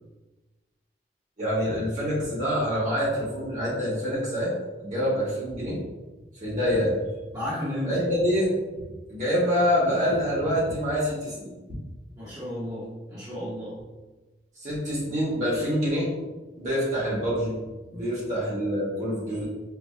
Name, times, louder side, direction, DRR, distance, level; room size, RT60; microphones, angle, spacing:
voice 1, 1.4-4.5 4.8-5.8 6.4-7.1 7.8-8.5 9.1-11.5 14.6-16.1 16.5-17.6 17.9-19.5, equal, 45° right, -8 dB, 1.2 m, -26 dB
voice 2, 7.3-7.9 12.2-13.8 17.9-18.0, left 1 dB, 20° right, -11 dB, 1.0 m, -33 dB
4.6 x 2.2 x 2.4 m, 1.2 s
head